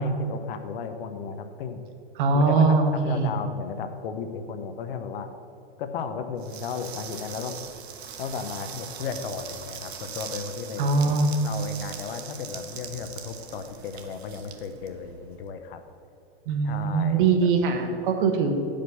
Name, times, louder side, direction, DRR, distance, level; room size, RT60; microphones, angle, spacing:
voice 1, 0.0-1.8 2.3-5.3 5.8-7.6 8.2-10.9 11.4-15.8 16.6-17.2, left 6 dB, 65° left, 8 dB, 0.8 m, -34 dB
voice 2, 2.1-3.3 10.8-11.3 16.5-18.5, right 4 dB, 55° right, 5 dB, 1.2 m, -22 dB
sound 1, 6.4-15.4, right 7 dB, 90° right, 1.0 m, -41 dB
9.2 x 5.1 x 5.5 m, 2.6 s
supercardioid pair, 150°, 31 cm